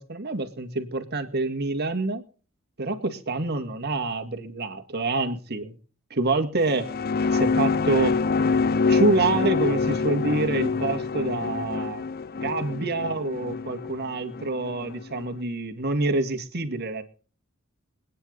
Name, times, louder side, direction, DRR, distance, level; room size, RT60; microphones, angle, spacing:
voice 1, 0.0-2.2 2.8-5.7 6.1-6.9 7.3-8.1 8.9-12.0 12.4-17.0, right 2 dB, 50° right, 7 dB, 2.2 m, -26 dB
sound 1, 6.6-15.2, left 4 dB, 45° left, 0.6 m, -26 dB
25.0 x 10.0 x 4.0 m, 0.40 s
head